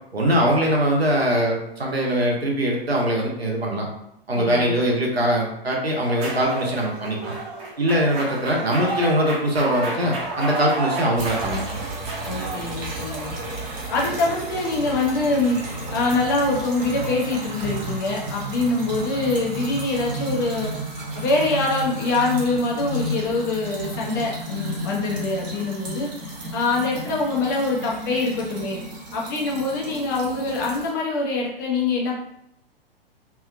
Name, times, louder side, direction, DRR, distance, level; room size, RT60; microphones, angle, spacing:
voice 1, 0.1-3.9 4.3-7.3 7.8-11.8, equal, 85° right, -1 dB, 0.9 m, -22 dB
voice 2, 4.3-4.7 12.3-13.3 13.9-20.7 21.1-26.1 26.5-28.8 29.1-32.2, left 3 dB, 20° left, -2 dB, 0.3 m, -24 dB
sound 1, 6.1-18.1, right 2 dB, 20° right, 0.6 m, -33 dB
sound 2, 11.2-30.9, right 1 dB, 45° right, 1.1 m, -33 dB
2.8 x 2.3 x 2.4 m, 0.79 s
figure-of-eight pair, 115°, 30 cm